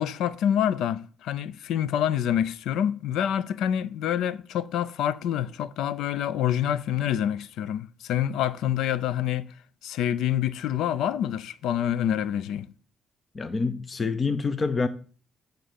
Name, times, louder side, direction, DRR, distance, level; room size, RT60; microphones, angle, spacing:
voice 1, 0.0-9.4 9.8-12.7, left 10 dB, 85° left, 0.5 m, -27 dB
voice 2, 13.3-14.9, left 4 dB, 35° left, 0.7 m, -26 dB
8.8 x 3.9 x 6.9 m
cardioid pair, 90°, 0 cm